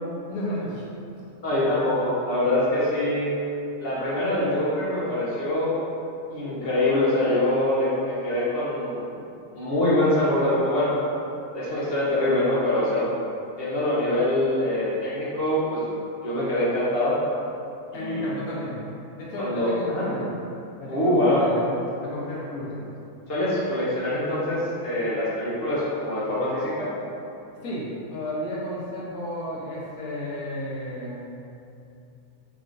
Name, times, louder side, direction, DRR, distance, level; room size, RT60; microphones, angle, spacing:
voice 1, 0.3-0.8 17.9-18.8 19.2-20.3 20.8-21.7 22.0-22.9 27.6-31.3, equal, 85° left, -6 dB, 1.4 m, -33 dB
voice 2, 1.4-3.3 3.8-5.8 6.3-9.2 9.6-10.9 11.5-13.1 13.6-15.8 16.2-17.2 17.9-18.2 19.4-20.0 20.9-21.4 23.3-26.9, left 1 dB, 50° left, -9 dB, 0.9 m, -24 dB
4.1 x 3.6 x 2.5 m, 2.7 s
omnidirectional pair, 1.5 m